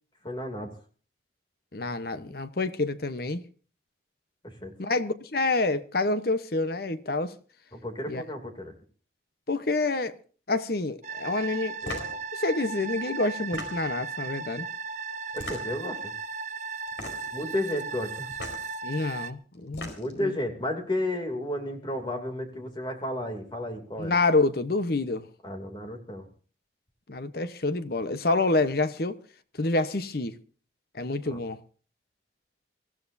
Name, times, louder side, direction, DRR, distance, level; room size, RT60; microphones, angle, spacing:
voice 1, 0.2-0.7 4.4-4.7 7.7-8.7 15.3-16.1 17.3-18.3 20.0-24.2 25.4-26.3 31.2-31.4, left 1 dB, 25° left, 2.7 m, -32 dB
voice 2, 1.7-3.4 4.8-7.3 8.1-8.2 9.5-10.1 10.5-14.7 18.8-20.4 24.0-25.3 27.1-29.2 29.6-30.4 30.9-31.6, left 2 dB, 55° left, 0.9 m, -28 dB
sound 1, 11.0-19.3, right 5 dB, 40° right, 0.7 m, -36 dB
sound 2, 11.8-12.2 13.3-14.0 15.3-15.9 16.9-17.4 18.3-18.6 19.5-20.2, left 2 dB, 75° left, 4.4 m, -38 dB
24.0 x 15.0 x 2.7 m
head